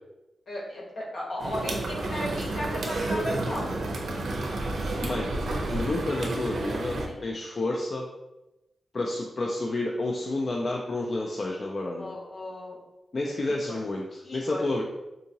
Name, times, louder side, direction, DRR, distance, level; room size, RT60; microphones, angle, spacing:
voice 1, 0.5-3.7 7.0-7.3 12.0-12.8 13.3-13.8 14.2-14.6, left 1 dB, 65° left, -3 dB, 1.0 m, -35 dB
sound 1, 1.4-7.1, right 2 dB, 90° right, 0.5 m, -30 dB
voice 2, 5.0-5.3 5.7-8.1 8.9-12.1 13.1-14.8, left 2 dB, 40° left, -1 dB, 0.3 m, -30 dB
3.7 x 2.7 x 2.7 m, 0.99 s
wide cardioid pair, 150°, 0 cm